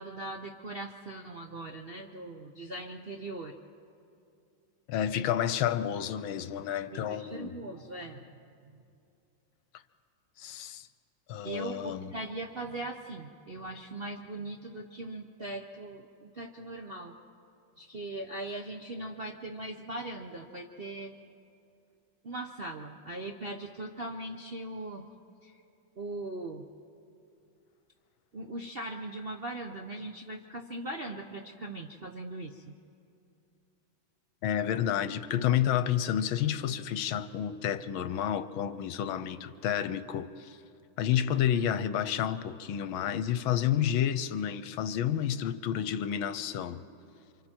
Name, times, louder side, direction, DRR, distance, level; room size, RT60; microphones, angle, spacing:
voice 1, 0.0-3.6 6.9-8.3 8.7-8.8 11.4-17.2 17.8-21.2 22.2-25.1 25.4-25.6 26.0-26.7 28.3-32.8, right 2 dB, 50° right, 0.6 m, -40 dB
voice 2, 4.9-7.5 10.4-10.9 11.3-12.1 34.4-40.6 41.0-46.8, left 10 dB, 80° left, 1.5 m, -30 dB
29.0 x 25.5 x 4.4 m
omnidirectional pair, 2.3 m